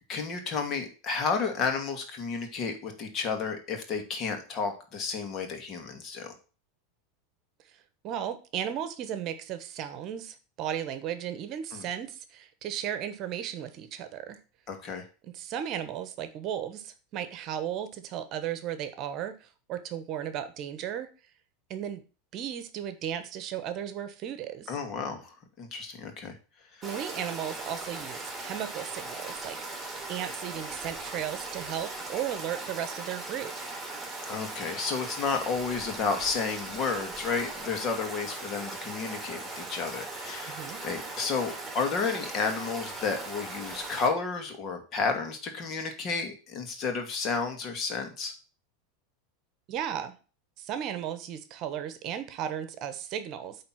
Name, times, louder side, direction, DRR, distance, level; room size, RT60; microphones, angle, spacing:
voice 1, 0.1-6.3 11.7-11.9 14.7-15.0 24.7-26.3 26.7-26.9 34.3-48.3, left 5 dB, 40° left, 5 dB, 2.1 m, -32 dB
voice 2, 8.0-14.4 15.2-19.3 19.7-21.1 21.7-22.0 22.3-24.7 26.8-29.6 30.1-33.5 40.5-40.8 49.7-50.1 50.6-53.6, right 10 dB, 45° right, 11 dB, 1.1 m, -35 dB
Stream, 26.8-44.1, right 2 dB, 10° right, 3.3 m, -39 dB
8.8 x 3.5 x 5.8 m, 0.35 s
hypercardioid pair, 105°, 0 cm